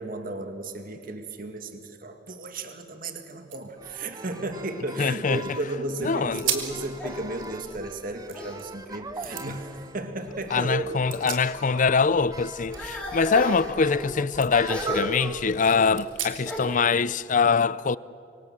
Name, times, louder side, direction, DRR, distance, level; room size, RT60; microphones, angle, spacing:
voice 1, 0.0-10.8, right 2 dB, 50° right, 2.0 m, -34 dB
sound 1, 2.9-3.0 3.2-5.4 5.9-6.0 6.4-6.8 7.2-8.6 9.2-9.5 10.8-11.9 12.2-14.0 14.3-14.5 15.0-15.1 15.9-16.7, right 9 dB, 85° right, 3.4 m, -36 dB
sound 2, 3.8-15.4, right 3 dB, 20° right, 1.0 m, -41 dB
voice 2, 5.0-5.4 6.0-6.4 10.5-18.0, left 5 dB, 40° left, 0.5 m, -23 dB
sound 3, 6.0-8.6 9.1-9.7 10.3-11.3 11.6-16.8, left 1 dB, 5° left, 4.1 m, -36 dB
26.5 x 24.5 x 7.5 m
head